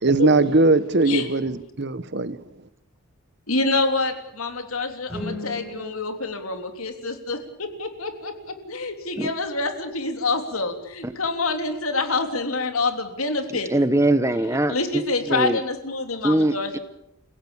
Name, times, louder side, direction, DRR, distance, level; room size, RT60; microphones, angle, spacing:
voice 1, 0.0-2.4, right 3 dB, 55° right, 15 dB, 1.1 m, -20 dB
voice 2, 3.5-13.7 14.7-16.8, left 3 dB, 85° left, 6 dB, 3.3 m, -27 dB
sound 1, 5.0-7.2, left 1 dB, 5° left, 6.7 m, -37 dB
voice 3, 13.7-14.7 15.3-15.6 16.2-16.8, right 1 dB, 15° right, 13 dB, 1.0 m, -21 dB
29.5 x 17.0 x 7.1 m, 0.82 s
head